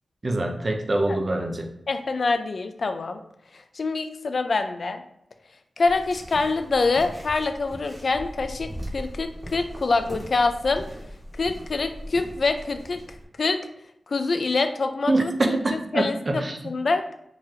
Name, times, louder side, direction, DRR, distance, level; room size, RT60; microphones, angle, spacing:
voice 1, 0.2-1.7 15.1-16.6, right 2 dB, 35° right, 4 dB, 0.5 m, -24 dB
voice 2, 1.9-3.2 3.7-5.0 5.8-10.8 11.4-13.0 13.4-13.6 14.1-17.1, left 3 dB, 55° left, 8 dB, 0.3 m, -25 dB
sound 1, 5.8-13.2, equal, 10° right, 1.3 m, -39 dB
3.8 x 3.0 x 2.7 m, 0.76 s
wide cardioid pair, 135°, 0 cm